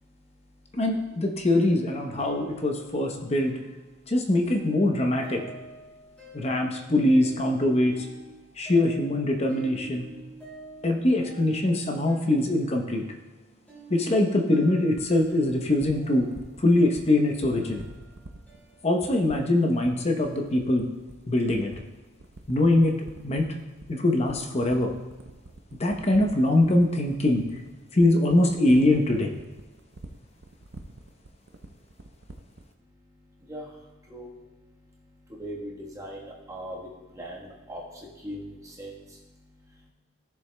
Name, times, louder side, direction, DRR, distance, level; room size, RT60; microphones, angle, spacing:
voice 1, 0.0-0.8 1.1-1.2 3.2-3.3 3.9-4.1 5.4-6.9 8.4-8.7 9.9-10.9 32.8-39.9, equal, 15° right, -4 dB, 1.2 m, -43 dB
voice 2, 0.7-3.5 4.1-5.4 6.3-8.0 8.6-10.1 10.8-13.0 13.9-16.3 16.6-17.8 18.8-20.9 21.3-21.7 22.5-23.0 23.2-23.5 23.9-24.9 25.8-27.4 27.9-29.3, left 1 dB, 30° left, 2 dB, 0.8 m, -23 dB
sound 1, 1.7-19.2, right 3 dB, 5° left, 3.0 m, -48 dB
sound 2, 14.9-32.7, right 2 dB, 60° right, 0.6 m, -45 dB
14.0 x 6.8 x 2.2 m, 1.2 s
head